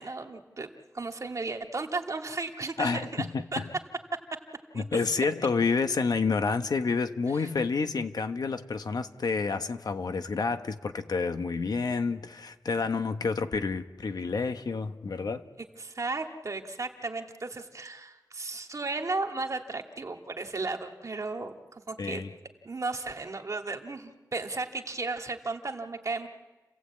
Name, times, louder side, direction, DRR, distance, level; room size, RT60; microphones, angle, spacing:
voice 1, 0.0-3.3 3.5-3.6 4.7-4.8 7.4-7.5 15.8-22.2 22.6-26.3, right 3 dB, 55° right, 2.1 m, -35 dB
voice 2, 2.8-3.7 4.7-15.4 22.0-22.3, left 4 dB, 80° left, 1.2 m, -29 dB
30.0 x 16.5 x 8.5 m
wide cardioid pair, 80°, 7 cm